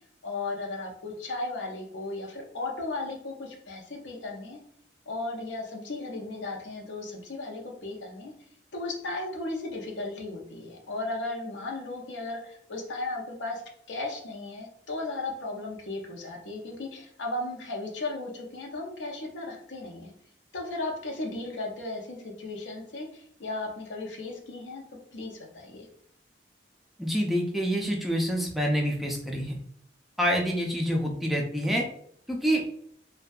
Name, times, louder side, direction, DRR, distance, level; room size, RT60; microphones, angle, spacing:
voice 1, 0.2-4.6 5.1-8.3 8.7-13.6 13.9-20.1 20.5-24.8 25.1-25.9, left 2 dB, 85° left, 0 dB, 0.6 m, -35 dB
voice 2, 27.0-29.6 30.2-31.9 32.3-32.6, equal, ahead, -1 dB, 0.3 m, -27 dB
2.6 x 2.2 x 2.3 m, 0.66 s
head